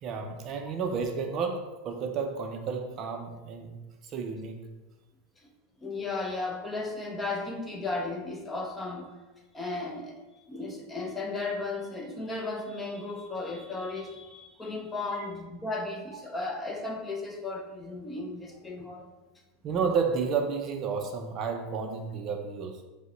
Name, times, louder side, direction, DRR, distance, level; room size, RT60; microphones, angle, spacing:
voice 1, 0.0-3.8 4.0-4.6 15.1-15.2 19.6-22.9, right 5 dB, 35° right, 4 dB, 0.4 m, -31 dB
voice 2, 5.8-9.1 9.5-19.1, left 3 dB, 15° left, 1 dB, 0.5 m, -35 dB
5.1 x 2.1 x 3.8 m, 1.1 s
supercardioid pair, 140°, 0 cm